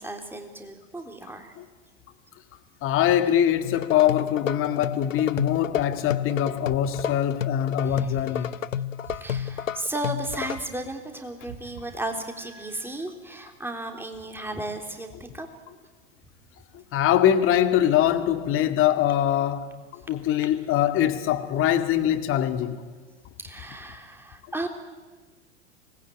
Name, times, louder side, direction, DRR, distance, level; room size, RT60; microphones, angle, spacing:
voice 1, 0.0-1.5 7.8-8.1 9.1-15.5 22.5-22.6 23.4-24.7, right 1 dB, 5° right, 3.3 m, -34 dB
voice 2, 2.8-8.5 16.7-22.9, left 11 dB, 35° left, 2.0 m, -23 dB
sound 1, 3.6-10.6, left 9 dB, 80° left, 0.7 m, -31 dB
sound 2, 5.7-8.7 9.0-12.4, right 6 dB, 50° right, 4.8 m, -46 dB
25.0 x 19.5 x 9.1 m
figure-of-eight pair, 90°, 38 cm